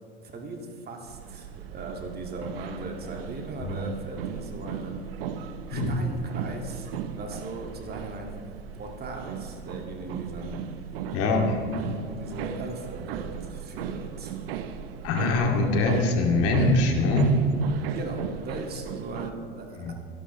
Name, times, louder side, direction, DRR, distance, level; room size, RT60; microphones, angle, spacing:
voice 1, 0.2-5.1 5.7-10.6 12.1-14.4 17.9-19.9, right 2 dB, 30° right, 2 dB, 2.2 m, -38 dB
sound 1, 1.1-19.3, right 8 dB, 70° right, 1.0 m, -37 dB
voice 2, 11.1-11.6 15.0-17.3 19.8-19.9, left 2 dB, 50° left, 1 dB, 2.5 m, -23 dB
22.5 x 11.5 x 3.2 m, 2.6 s
hypercardioid pair, 90°, 30 cm